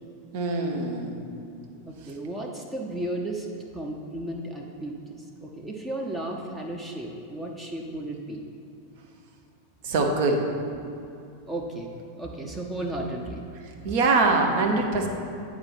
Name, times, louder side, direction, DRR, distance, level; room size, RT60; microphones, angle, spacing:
voice 1, 0.3-1.3 9.8-10.5 13.8-15.1, right 3 dB, 50° right, 2 dB, 0.9 m, -23 dB
voice 2, 1.9-3.5 3.7-8.4 11.5-11.9 12.1-13.4, right 1 dB, 10° right, 0 dB, 0.7 m, -34 dB
8.7 x 4.2 x 4.4 m, 2.6 s
figure-of-eight pair, 90°, 0 cm